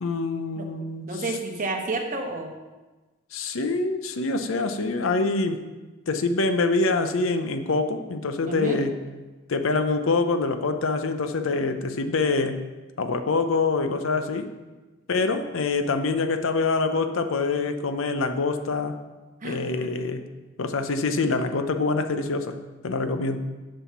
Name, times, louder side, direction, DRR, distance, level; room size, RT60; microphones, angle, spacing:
voice 1, 0.0-1.4 3.3-5.6 6.1-9.0 9.5-12.6 13.0-14.5 15.1-19.0 19.4-20.2 20.6-22.6 22.8-23.4, left 3 dB, 85° left, 8 dB, 0.7 m, -25 dB
voice 2, 1.1-2.5 8.5-8.8 19.4-19.9, right 2 dB, 40° right, 3 dB, 1.1 m, -30 dB
7.1 x 5.6 x 5.8 m, 1.2 s
head